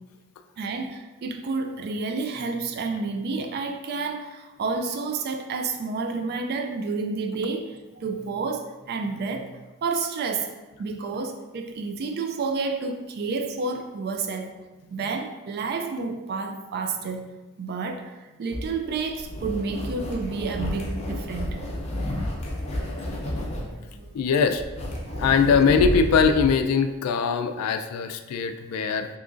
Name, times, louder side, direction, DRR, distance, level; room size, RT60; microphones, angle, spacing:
voice 1, 0.6-10.5 10.8-14.5 14.9-17.2 17.6-21.6 21.9-22.0 23.1-24.1 25.0-25.5, right 4 dB, 45° right, 5 dB, 0.3 m, -30 dB
sound 1, 18.5-26.5, left 1 dB, 30° left, 0.5 m, -31 dB
voice 2, 24.1-24.6 25.2-29.1, left 5 dB, 85° left, 11 dB, 0.3 m, -21 dB
3.6 x 2.9 x 2.5 m, 1.1 s
head